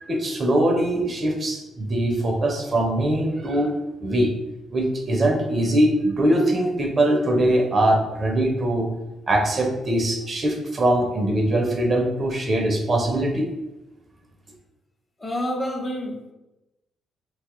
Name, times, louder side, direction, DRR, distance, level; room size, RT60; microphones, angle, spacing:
voice 1, 0.0-3.8 4.0-4.3 4.7-8.9 9.3-13.5, right 1 dB, 40° right, 2 dB, 0.5 m, -22 dB
voice 2, 15.2-16.3, equal, 25° left, 0 dB, 0.7 m, -28 dB
3.0 x 2.3 x 3.0 m, 1.0 s
cardioid pair, 90°, 0 cm